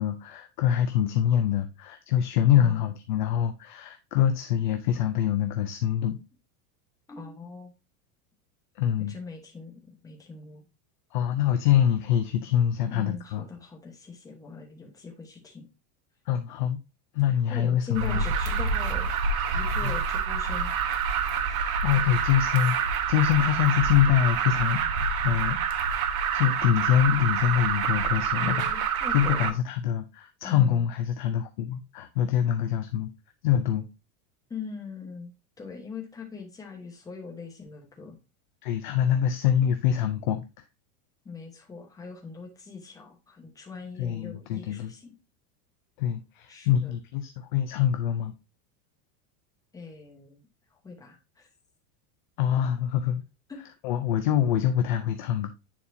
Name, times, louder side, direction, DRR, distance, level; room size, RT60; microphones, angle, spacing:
voice 1, 0.0-6.2 8.8-9.1 11.1-13.4 16.3-16.8 17.1-18.2 19.8-20.0 21.8-25.9 26.3-33.1 33.4-33.9 38.6-40.4 44.0-44.9 46.0-48.3 52.4-53.2 53.8-55.5, left 10 dB, 35° left, 0.4 m, -25 dB
voice 2, 7.1-7.7 9.1-10.6 12.9-15.7 17.3-19.1 19.5-20.8 21.5-21.7 28.3-29.6 30.4-30.9 34.5-35.3 35.6-38.2 41.2-45.1 46.5-46.9 49.7-50.4 50.8-51.5 53.5-53.6, left 5 dB, 10° left, 1.1 m, -41 dB
Alarm, 17.9-29.5, right 6 dB, 65° right, 1.2 m, -27 dB
9.4 x 4.1 x 2.7 m
supercardioid pair, 180°, 46 cm